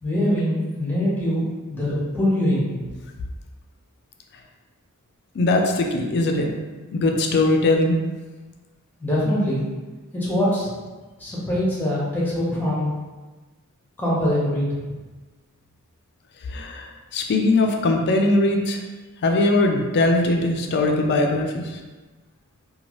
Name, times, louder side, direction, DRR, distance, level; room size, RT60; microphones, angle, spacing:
voice 1, 0.0-2.8 9.0-9.7 10.1-10.7 11.2-12.9 14.0-14.7, equal, 10° left, -7 dB, 0.8 m, -23 dB
voice 2, 5.4-6.5 6.9-8.0 16.5-18.8 19.2-21.7, left 2 dB, 50° left, 3 dB, 0.4 m, -20 dB
2.9 x 2.2 x 2.9 m, 1.2 s
head